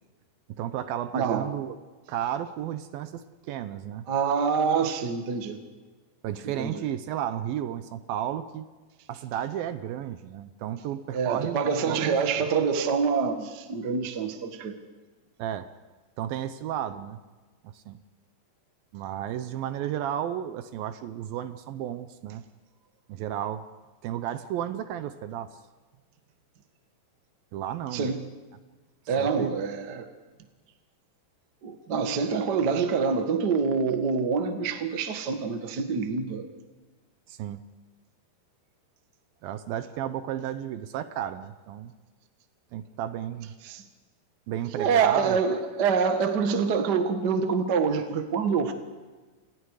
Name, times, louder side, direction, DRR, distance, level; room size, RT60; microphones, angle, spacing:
voice 1, 0.5-1.8 2.1-4.1 6.2-8.7 9.1-12.2 15.4-15.7 16.2-17.2 17.7-18.0 18.9-22.4 23.1-23.6 24.0-25.5 27.5-28.1 29.2-29.5 37.3-37.6 39.4-41.9 42.7-43.5 44.5-45.4, right 11 dB, 75° right, 2.5 m, -33 dB
voice 2, 1.1-1.5 4.1-5.6 6.6-6.8 11.1-14.7 27.9-28.2 29.1-30.1 31.6-36.5 43.6-43.8 44.8-48.7, right 5 dB, 45° right, 1.3 m, -26 dB
29.0 x 28.5 x 4.9 m
omnidirectional pair, 4.5 m